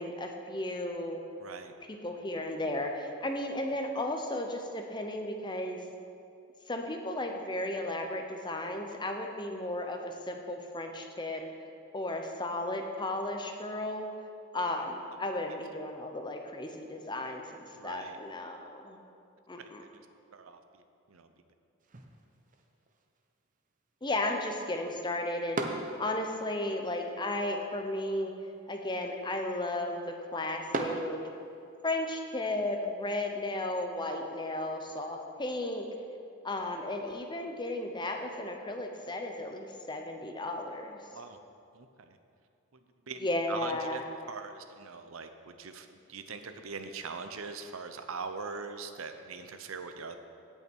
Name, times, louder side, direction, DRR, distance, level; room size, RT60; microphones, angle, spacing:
voice 1, 0.0-1.2 1.9-5.8 6.7-11.4 11.9-14.1 14.5-17.4 17.8-19.0 19.5-19.8 24.0-28.3 28.7-31.2 31.8-35.9 36.4-41.0 43.2-44.0, left 1 dB, 20° left, 4 dB, 0.8 m, -34 dB
voice 2, 1.4-1.7 17.7-18.2 19.6-19.9 20.3-20.8 21.1-21.3 41.1-41.4 41.7-42.2 42.7-42.8 43.1-44.0 44.3-50.2, right 4 dB, 85° right, 8 dB, 0.7 m, -42 dB
sound 1, 21.8-31.8, right 2 dB, 40° right, 0.7 m, -43 dB
16.5 x 5.7 x 4.6 m, 2.5 s
head